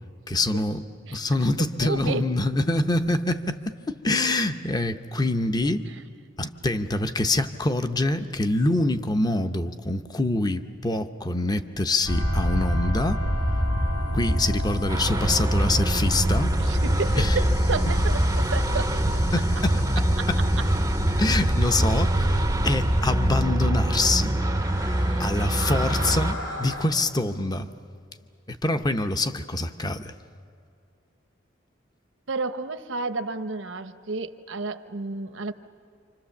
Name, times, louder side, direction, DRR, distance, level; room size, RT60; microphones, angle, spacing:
voice 1, 0.3-0.8 1.1-5.8 6.4-13.2 14.1-16.6 17.2-17.4 19.3-20.1 21.2-24.4 25.2-27.7 28.5-30.1, left 2 dB, 20° left, 9 dB, 0.7 m, -25 dB
voice 2, 1.8-2.3 5.9-6.0 16.6-19.2 20.2-20.3 25.1-25.3 32.3-35.5, right 3 dB, 75° right, 10 dB, 0.9 m, -31 dB
sound 1, 12.0-26.8, equal, 70° left, 3.8 m, -27 dB
sound 2, 14.9-26.3, right 1 dB, 15° right, 0.6 m, -25 dB
28.0 x 25.5 x 7.1 m, 2.3 s
head